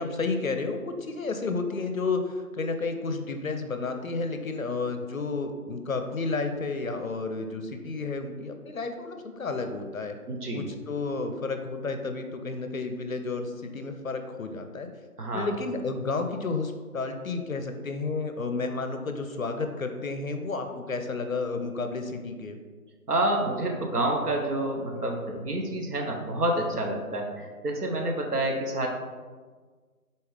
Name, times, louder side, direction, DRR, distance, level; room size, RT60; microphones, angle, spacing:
voice 1, 0.0-10.2 10.5-14.9 15.3-22.6, left 3 dB, 65° left, 6 dB, 0.5 m, -31 dB
voice 2, 10.3-10.7 15.2-15.5 23.1-28.9, right 1 dB, 85° right, 1 dB, 1.0 m, -28 dB
4.1 x 3.5 x 3.2 m, 1.5 s
figure-of-eight pair, 170°, 45 cm